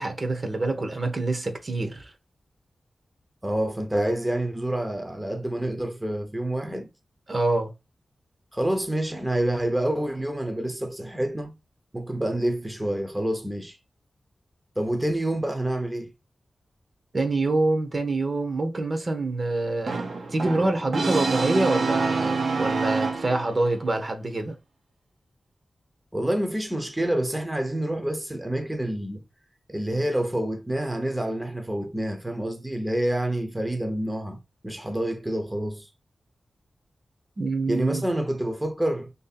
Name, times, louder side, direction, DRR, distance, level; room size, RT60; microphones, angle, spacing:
voice 1, 0.0-2.1 7.3-7.7 17.1-20.0 20.3-24.6 37.4-38.1, right 2 dB, 45° right, 0.8 m, -26 dB
voice 2, 3.4-6.9 8.5-11.5 11.9-13.8 14.8-16.1 26.1-29.2 29.7-35.9 37.7-39.1, right 1 dB, 10° right, 0.6 m, -27 dB
Brass instrument, 19.9-23.7, right 4 dB, 75° right, 0.7 m, -26 dB
3.1 x 2.7 x 4.0 m
cardioid pair, 55°, 0 cm